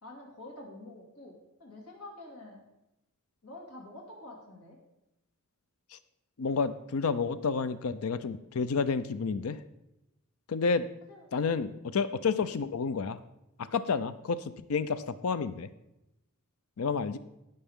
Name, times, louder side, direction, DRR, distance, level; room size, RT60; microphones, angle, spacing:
voice 1, 0.0-2.6 3.4-4.8 11.1-11.8, left 2 dB, 85° left, -1 dB, 2.6 m, -48 dB
voice 2, 6.4-9.6 10.5-10.9 11.3-13.2 13.6-15.7 16.8-17.2, left 5 dB, 70° left, 14 dB, 0.5 m, -30 dB
17.0 x 6.6 x 3.6 m, 0.88 s
head